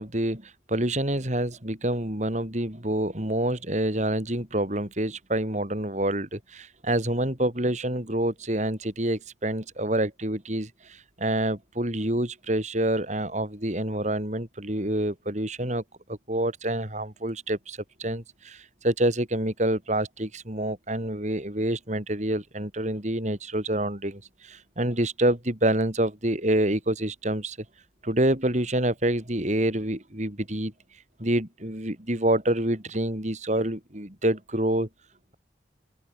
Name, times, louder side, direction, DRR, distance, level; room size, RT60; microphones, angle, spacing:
voice 1, 0.0-15.8 16.1-27.6 28.0-30.7 31.2-34.9, right 1 dB, 40° right, 3.9 m, -27 dB
open air
head